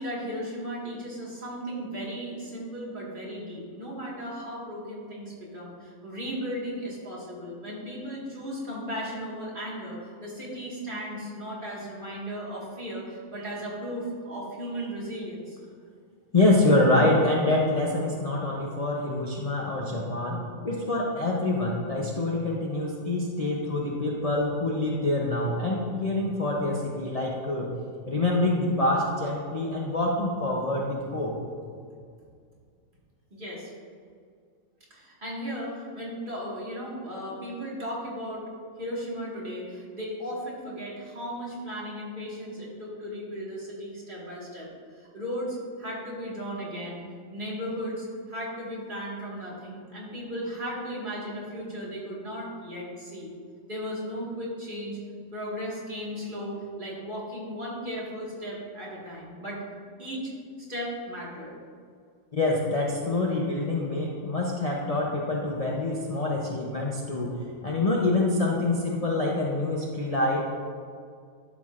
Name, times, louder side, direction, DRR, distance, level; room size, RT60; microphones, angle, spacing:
voice 1, 0.0-15.6 33.3-33.7 34.9-38.4 38.8-47.0 47.3-53.3 53.7-55.0 55.3-59.6 60.0-60.3 60.7-61.6, equal, 40° right, -6 dB, 1.9 m, -36 dB
voice 2, 16.3-27.7 28.1-31.3 62.3-70.4, left 2 dB, 35° left, -3 dB, 0.6 m, -26 dB
12.0 x 6.1 x 2.5 m, 2.2 s
omnidirectional pair, 1.4 m